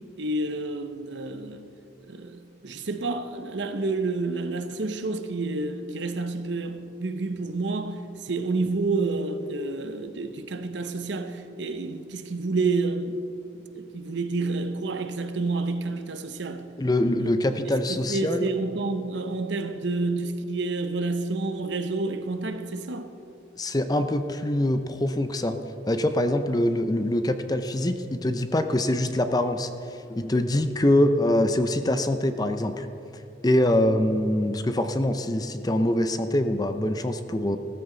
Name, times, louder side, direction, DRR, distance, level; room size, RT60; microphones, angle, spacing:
voice 1, 0.2-1.6 2.1-13.2 13.7-16.6 17.2-17.3 17.9-23.1, right 3 dB, 75° right, 0.9 m, -29 dB
voice 2, 16.8-18.5 23.6-25.6 25.9-29.7 30.1-32.9 33.4-37.6, left 1 dB, 20° left, 0.6 m, -24 dB
15.5 x 13.5 x 3.9 m
head